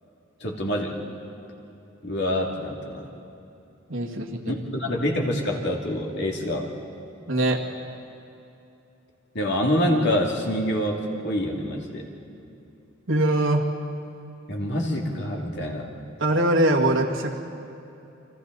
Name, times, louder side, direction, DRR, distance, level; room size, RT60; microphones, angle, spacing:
voice 1, 0.4-1.0 2.0-3.0 4.5-6.7 9.3-12.0 14.5-15.9, equal, 60° left, 0 dB, 2.7 m, -26 dB
voice 2, 3.9-4.6 7.3-7.6 13.1-13.7 16.2-17.3, right 1 dB, 70° right, 0 dB, 2.1 m, -22 dB
29.5 x 25.0 x 4.1 m, 2.8 s
head